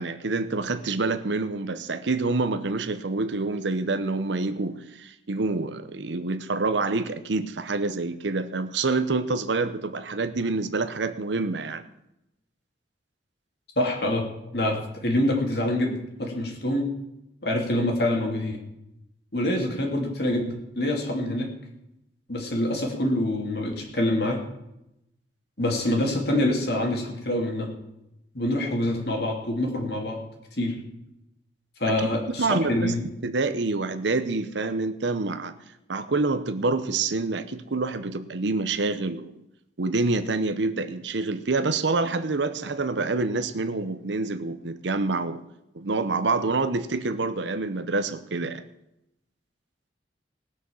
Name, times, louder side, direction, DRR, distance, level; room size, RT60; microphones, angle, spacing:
voice 1, 0.0-11.8 31.9-32.9 33.2-35.5 35.9-39.3 39.8-45.4 45.7-48.6, right 3 dB, 80° right, 11 dB, 0.8 m, -27 dB
voice 2, 13.8-14.3 14.5-16.9 17.4-18.6 19.3-21.5 22.3-24.4 25.6-27.7 28.3-30.2 30.6-30.8 31.8-33.1, left 1 dB, 60° left, 1 dB, 2.8 m, -26 dB
18.5 x 6.4 x 7.1 m, 0.86 s
head